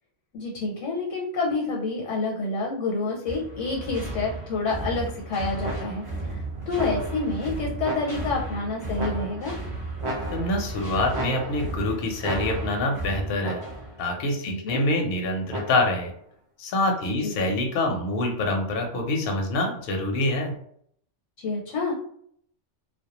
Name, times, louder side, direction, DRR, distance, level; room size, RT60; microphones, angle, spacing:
voice 1, 0.3-9.6 14.5-14.8 17.2-17.5 21.4-21.9, left 3 dB, 85° left, -1 dB, 1.0 m, -28 dB
sound 1, 3.3-14.0, right 2 dB, 30° right, 0.7 m, -34 dB
sound 2, 5.6-6.2 6.7-7.3 7.8-8.5 9.0-9.6 10.0-10.8 11.1-11.8 12.2-12.9 13.4-14.0 15.5-16.1, right 1 dB, 55° right, 0.3 m, -35 dB
voice 2, 10.3-13.6 14.0-16.1 16.6-20.5, left 2 dB, 60° left, 2 dB, 0.7 m, -26 dB
2.1 x 2.1 x 2.8 m, 0.65 s
omnidirectional pair, 1.2 m